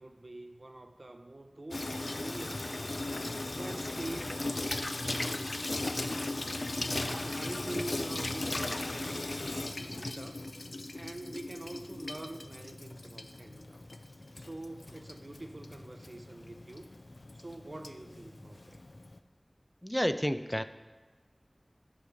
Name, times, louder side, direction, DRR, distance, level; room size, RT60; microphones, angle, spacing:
voice 1, 0.0-3.0 3.5-5.6 6.9-10.4 10.9-13.8 14.4-16.9 17.3-18.8, right 1 dB, 55° right, 7 dB, 0.7 m, -45 dB
Water tap faucet / Sink (filling or washing), 1.7-19.2, left 2 dB, 60° left, 0.5 m, -37 dB
voice 2, 19.8-20.6, equal, 5° left, 11 dB, 0.4 m, -30 dB
11.5 x 4.9 x 6.8 m, 1.3 s
wide cardioid pair, 55°, 0 cm